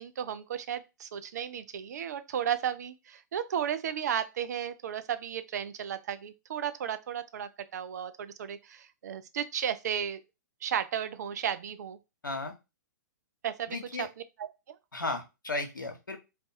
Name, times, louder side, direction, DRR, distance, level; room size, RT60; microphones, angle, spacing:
voice 1, 0.0-10.2 10.6-12.0 13.4-14.8, right 9 dB, 60° right, 0.4 m, -34 dB
voice 2, 12.2-12.5 13.7-14.1 14.9-16.2, left 2 dB, 85° left, 0.8 m, -34 dB
2.5 x 2.3 x 4.0 m
figure-of-eight pair, 115°, 10 cm